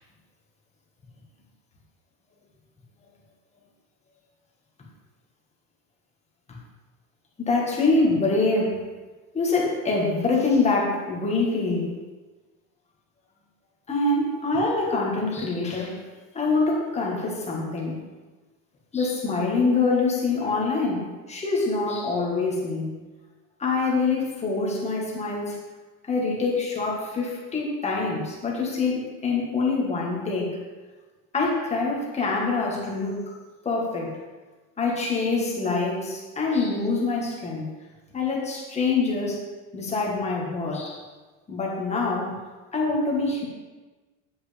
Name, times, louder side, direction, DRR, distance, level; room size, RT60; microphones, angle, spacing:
voice 1, 7.4-8.9 9.3-11.9 13.9-16.0 16.3-18.0 18.9-23.0 23.6-25.6 26.0-30.6 31.3-33.3 33.6-34.2 34.8-37.7 38.1-39.4 39.7-41.0 41.5-42.3 42.7-43.4, left 3 dB, 15° left, -2 dB, 1.6 m, -25 dB
7.9 x 7.8 x 3.4 m, 1.3 s
cardioid pair, 155°, 40 cm